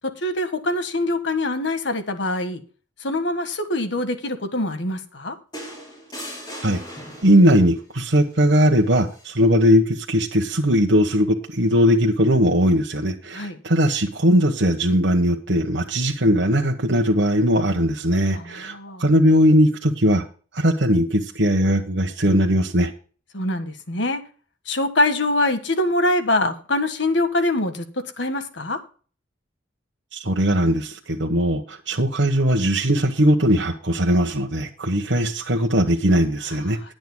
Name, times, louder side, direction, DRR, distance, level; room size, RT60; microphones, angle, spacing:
voice 1, 0.2-2.6 3.0-5.3 13.3-13.6 18.3-19.1 23.3-24.2 24.7-28.8 36.6-36.9, left 1 dB, 70° left, 8 dB, 1.6 m, -24 dB
sound 1, 5.5-7.7 9.1-9.3, equal, 20° left, 4.6 m, -38 dB
voice 2, 7.2-20.2 20.5-22.9 30.1-36.9, equal, 70° right, 1 dB, 1.2 m, -19 dB
20.5 x 7.9 x 2.2 m, 0.39 s
head